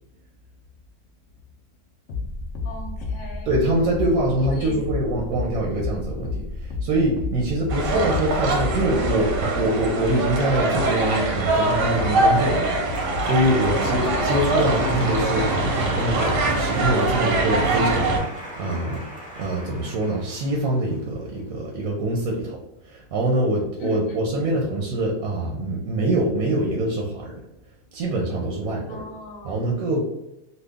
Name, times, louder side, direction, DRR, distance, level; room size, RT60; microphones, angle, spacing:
sound 1, 2.1-9.5, left 3 dB, 75° left, 0.6 m, -31 dB
voice 1, 2.6-3.5 4.5-4.9 14.0-14.6 23.8-24.4 28.9-29.7, left 2 dB, 60° left, 1 dB, 1.0 m, -39 dB
voice 2, 3.5-12.7 13.0-19.1 19.4-22.6 22.9-27.4 27.9-29.0 29.4-30.0, right 1 dB, 65° right, -1 dB, 1.0 m, -24 dB
sound 2, 7.7-18.2, right 2 dB, 85° right, 1.3 m, -23 dB
Applause, 12.4-21.5, equal, 10° left, 0.4 m, -37 dB
3.1 x 2.3 x 3.4 m, 0.89 s
omnidirectional pair, 1.8 m